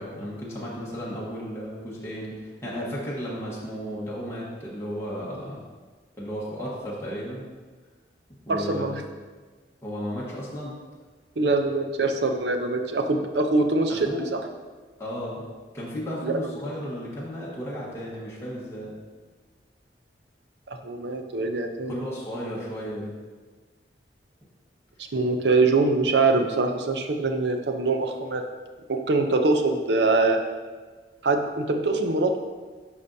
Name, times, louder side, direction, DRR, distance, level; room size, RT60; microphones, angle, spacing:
voice 1, 0.0-5.6 6.2-7.4 8.4-8.9 9.8-10.7 13.9-14.2 15.0-15.4 15.7-18.9 21.9-23.1, equal, 15° left, -7 dB, 1.2 m, -34 dB
voice 2, 8.5-9.0 11.4-14.4 16.2-16.3 20.7-22.0 25.1-28.4 28.9-30.4 31.2-32.4, right 3 dB, 75° right, 5 dB, 0.6 m, -23 dB
9.6 x 5.0 x 2.7 m, 1.4 s
head